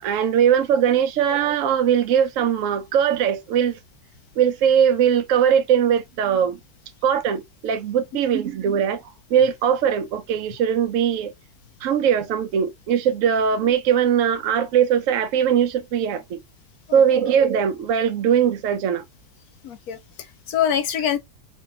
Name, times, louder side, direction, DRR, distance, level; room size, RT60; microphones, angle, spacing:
voice 1, 0.0-3.8 4.4-6.6 7.0-9.0 9.3-11.3 11.8-16.4 16.9-19.0, right 8 dB, 70° right, 0.7 m, -20 dB
voice 2, 19.6-21.2, left 9 dB, 70° left, 0.9 m, -25 dB
3.9 x 2.4 x 3.4 m
omnidirectional pair, 2.0 m